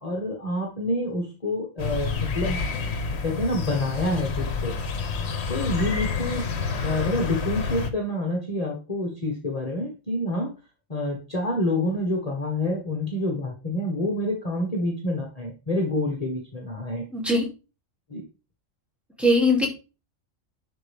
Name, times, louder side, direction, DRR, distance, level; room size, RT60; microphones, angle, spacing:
voice 1, 0.0-2.6 3.2-4.7 5.5-6.5 6.8-10.5 10.9-17.0 18.1-18.2, left 1 dB, 30° left, 1 dB, 1.5 m, -27 dB
sound 1, 1.8-7.9, left 5 dB, 55° left, 1.3 m, -29 dB
voice 2, 17.1-17.5 19.2-19.7, left 1 dB, ahead, -1 dB, 2.8 m, -20 dB
11.0 x 4.6 x 3.5 m, 0.31 s
omnidirectional pair, 1.4 m